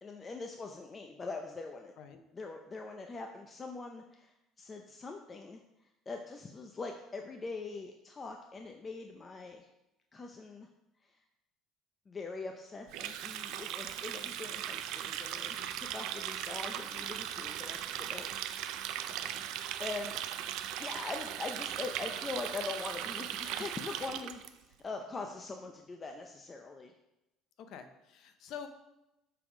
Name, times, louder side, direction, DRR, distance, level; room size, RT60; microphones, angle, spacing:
voice 1, 0.0-1.9 2.3-5.6 6.1-9.7 10.1-10.7 11.0-11.2 12.1-18.4 19.8-20.2 20.8-26.9, left 3 dB, 20° left, 3 dB, 0.5 m, -42 dB
Water tap faucet, 12.9-24.5, right 11 dB, 70° right, 0.4 m, -38 dB
voice 2, 19.1-19.4 27.6-28.7, left 8 dB, 55° left, 8 dB, 0.7 m, -47 dB
7.4 x 3.7 x 4.8 m, 0.92 s
cardioid pair, 140°, 0 cm